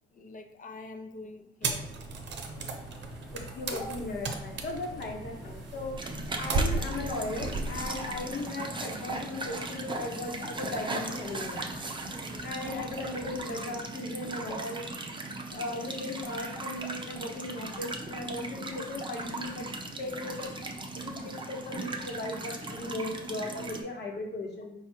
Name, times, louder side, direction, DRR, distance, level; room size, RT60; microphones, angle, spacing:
voice 1, 0.1-1.9 13.2-13.8, left 3 dB, 40° left, 5 dB, 0.6 m, -45 dB
sound 1, 1.6-8.3, right 3 dB, 65° right, 0.8 m, -35 dB
sound 2, 1.7-13.6, equal, ahead, 1.3 m, -51 dB
voice 2, 3.3-6.0 6.4-11.7 12.4-14.9 15.5-19.7 20.0-20.5 20.9-24.7, left 2 dB, 55° left, 1 dB, 1.1 m, -37 dB
sound 3, 6.0-23.8, right 2 dB, 25° right, 0.6 m, -38 dB
4.9 x 2.3 x 4.4 m, 0.78 s
cardioid pair, 90°, 20 cm